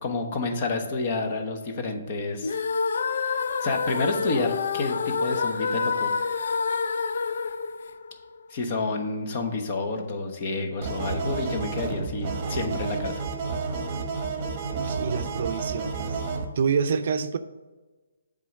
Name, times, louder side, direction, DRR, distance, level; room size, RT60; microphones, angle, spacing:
voice 1, 0.0-2.6 3.2-6.1 8.5-13.2, left 3 dB, 40° left, 6 dB, 1.1 m, -29 dB
sound 1, 2.4-8.6, left 5 dB, 60° left, 0.4 m, -28 dB
sound 2, 10.8-16.5, right 4 dB, 30° right, 1.0 m, -31 dB
voice 2, 14.7-16.2 16.6-17.4, right 6 dB, 50° right, 10 dB, 0.5 m, -27 dB
7.5 x 3.8 x 6.4 m, 1.2 s
hypercardioid pair, 155°, 0 cm